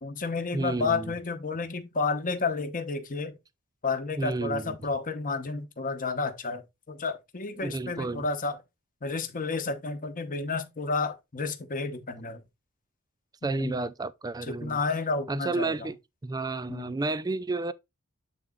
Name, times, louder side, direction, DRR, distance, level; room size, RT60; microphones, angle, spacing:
voice 1, 0.0-3.4 3.8-6.6 6.9-8.6 9.0-12.4 13.4-13.8 14.5-15.8 16.7-16.9, left 4 dB, 40° left, 0.9 m, -31 dB
voice 2, 0.5-1.1 4.2-4.8 7.6-8.3 13.4-14.8 15.3-16.0 16.2-17.7, right 3 dB, 15° right, 0.4 m, -31 dB
7.9 x 4.0 x 3.6 m
head